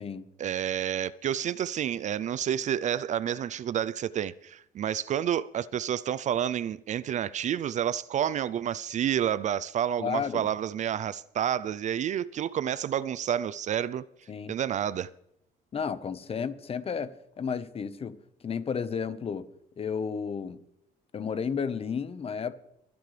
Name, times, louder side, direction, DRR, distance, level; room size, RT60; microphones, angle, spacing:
voice 1, 0.4-14.0 14.5-15.1, right 10 dB, 45° right, 0.4 m, -29 dB
voice 2, 10.0-10.5 14.3-14.5 15.7-18.2 18.4-19.5 19.8-20.6 21.1-22.5, left 6 dB, 35° left, 1.0 m, -32 dB
23.0 x 10.5 x 3.3 m
cardioid pair, 110°, 17 cm